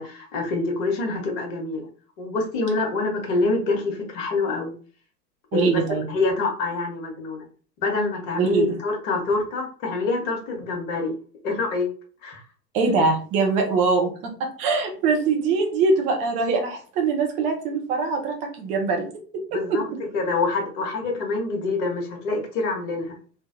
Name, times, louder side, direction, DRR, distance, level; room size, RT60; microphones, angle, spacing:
voice 1, 0.0-1.9 2.2-4.7 5.5-5.8 6.1-7.5 7.8-11.1 11.4-11.9 12.2-12.4 19.5-19.9 20.1-23.2, left 3 dB, 50° left, 1 dB, 1.2 m, -26 dB
voice 2, 5.5-6.1 8.4-8.8 12.7-19.0 19.3-19.8, right 4 dB, 15° right, 2 dB, 0.3 m, -23 dB
3.1 x 2.1 x 2.5 m, 0.41 s
figure-of-eight pair, 90°, 49 cm